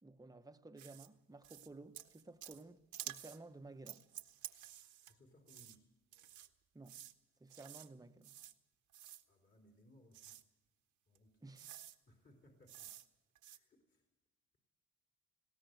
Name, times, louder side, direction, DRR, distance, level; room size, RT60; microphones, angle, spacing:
voice 1, 0.0-4.0 6.7-7.0 7.4-8.4 11.4-11.7, right 2 dB, 10° right, 1.1 m, -55 dB
sound 1, 0.8-1.1 1.4-1.7 1.9-2.6 2.9-3.4 3.9-5.1 5.5-5.8 6.1-6.5 6.9-7.1 7.5-7.9 8.2-8.5 8.9-9.2 10.1-10.4 11.1-11.2 11.6-12.0 12.7-13.1 13.4-13.6, right 11 dB, 80° right, 1.4 m, -51 dB
voice 2, 5.1-5.9 9.3-10.4 11.1-11.4 12.1-12.9 13.5-14.1, left 1 dB, 35° left, 3.6 m, -66 dB
20.0 x 17.5 x 7.9 m
cardioid pair, 90°, 30 cm